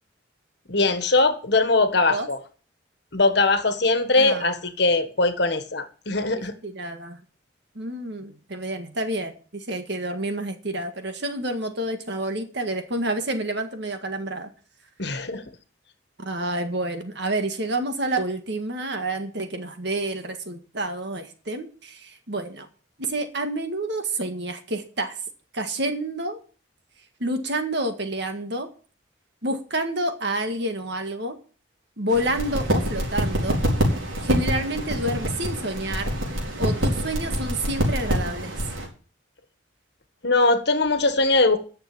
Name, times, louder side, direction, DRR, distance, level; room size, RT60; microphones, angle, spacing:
voice 1, 0.7-2.4 3.1-6.5 15.0-15.4 40.2-41.6, left 3 dB, 55° left, 1.5 m, -21 dB
voice 2, 4.2-4.5 6.3-7.2 7.8-14.5 16.2-22.7 23.0-25.2 25.5-26.4 27.2-28.7 29.4-31.4 32.0-33.6 34.2-36.2 36.6-38.5, right 1 dB, 60° right, 1.9 m, -29 dB
sound 1, 32.1-38.9, equal, 80° right, 4.3 m, -26 dB
10.5 x 7.0 x 8.5 m
head